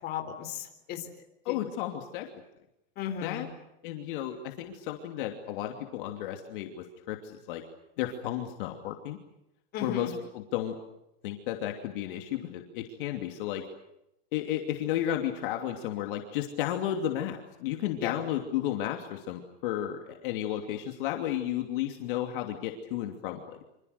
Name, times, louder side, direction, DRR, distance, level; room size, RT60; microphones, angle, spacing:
voice 1, 0.0-1.1 1.5-1.6 3.0-3.5 9.7-10.1 18.0-18.2, left 9 dB, 30° left, 5 dB, 3.9 m, -35 dB
voice 2, 1.4-2.3 3.2-3.5 3.8-7.6 8.0-9.2 9.8-10.7 11.2-13.7 14.3-23.6, left 11 dB, 55° left, 4 dB, 2.9 m, -33 dB
26.5 x 26.5 x 6.8 m, 0.85 s
supercardioid pair, 160°, 32 cm